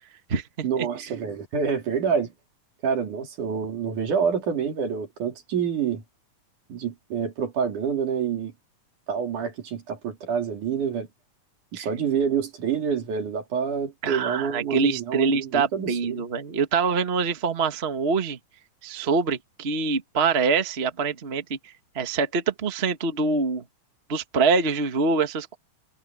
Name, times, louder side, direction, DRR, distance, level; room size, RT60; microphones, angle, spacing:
voice 1, 0.6-2.3 2.8-6.0 6.7-8.5 9.1-11.1 11.7-16.2, right 7 dB, 70° right, 4.4 m, -27 dB
voice 2, 14.0-18.4 18.8-21.6 21.9-23.6 24.1-25.6, right 4 dB, 40° right, 0.9 m, -24 dB
omnidirectional pair, 3.7 m